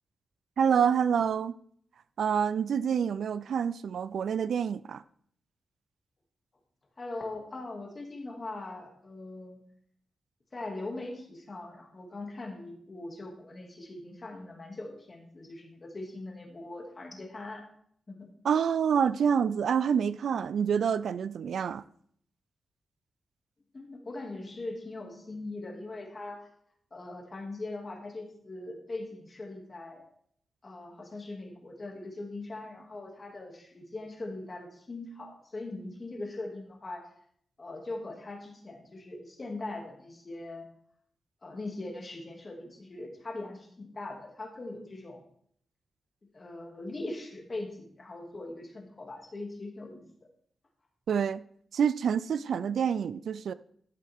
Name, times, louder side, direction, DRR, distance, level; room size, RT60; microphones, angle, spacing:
voice 1, 0.6-1.5 2.2-5.0 18.4-21.8 51.1-51.4 51.7-53.5, right 7 dB, 80° right, 0.4 m, -27 dB
voice 2, 7.0-9.6 10.5-17.7 18.1-18.3 23.7-26.5 26.9-30.1 30.6-37.1 37.6-40.7 41.4-45.2 46.3-50.1, left 2 dB, 35° left, 2.4 m, -41 dB
13.5 x 7.6 x 3.6 m
wide cardioid pair, 115°, 0 cm